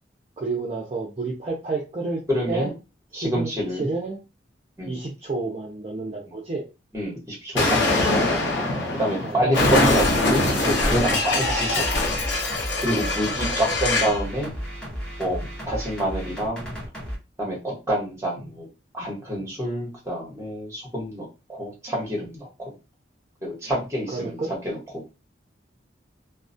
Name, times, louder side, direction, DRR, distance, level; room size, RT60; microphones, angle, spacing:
voice 1, 0.4-2.2 2.5-2.7 3.1-4.2 4.8-6.6 9.2-9.6 13.4-13.6 24.1-24.5, right 3 dB, 30° right, -2 dB, 0.4 m, -30 dB
voice 2, 2.3-2.7 3.1-3.9 4.8-5.0 6.9-8.2 9.0-12.1 12.8-14.5 15.2-15.4 15.6-16.8 17.4-18.7 18.9-22.7 23.4-24.4 24.6-25.0, equal, 15° right, -3 dB, 1.0 m, -27 dB
Explosion, 7.6-14.2, left 2 dB, 75° left, 0.6 m, -23 dB
sound 1, 11.3-17.2, equal, 5° left, 0.7 m, -34 dB
2.3 x 2.1 x 2.6 m, 0.28 s
head